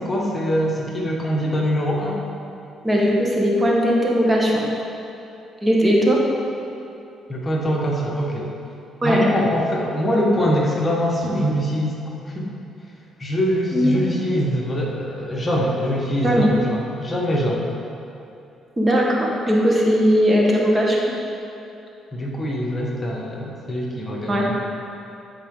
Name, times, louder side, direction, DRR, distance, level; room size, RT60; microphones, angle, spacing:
voice 1, 0.0-2.2 7.3-8.5 9.0-12.0 12.3-12.5 13.2-17.7 22.1-24.5, equal, 30° left, -3 dB, 1.4 m, -23 dB
voice 2, 2.8-4.7 5.6-6.2 9.0-9.3 13.7-14.0 16.2-16.5 18.8-21.0 24.3-24.5, equal, 20° right, -3 dB, 1.4 m, -18 dB
11.0 x 4.8 x 3.8 m, 2.7 s
supercardioid pair, 65°, 0 cm